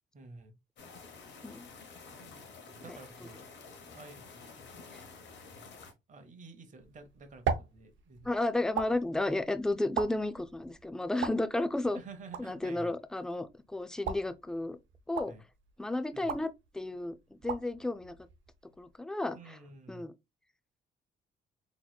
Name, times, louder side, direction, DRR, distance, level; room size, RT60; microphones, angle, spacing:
voice 1, 0.1-0.5 2.2-2.4 2.7-3.4 3.9-4.2 6.1-8.3 11.9-13.0 15.3-15.4 16.1-16.4 19.3-20.1, right 3 dB, 40° right, 0.8 m, -50 dB
sound 1, 0.8-5.9, left 4 dB, 65° left, 0.9 m, -50 dB
sound 2, 6.8-19.0, right 7 dB, 70° right, 0.6 m, -41 dB
voice 2, 8.2-12.0 12.4-14.8 15.1-15.3 15.8-18.1 18.8-19.6 19.9-20.1, left 2 dB, 5° left, 0.3 m, -33 dB
4.0 x 2.9 x 2.2 m
cardioid pair, 90°, 20 cm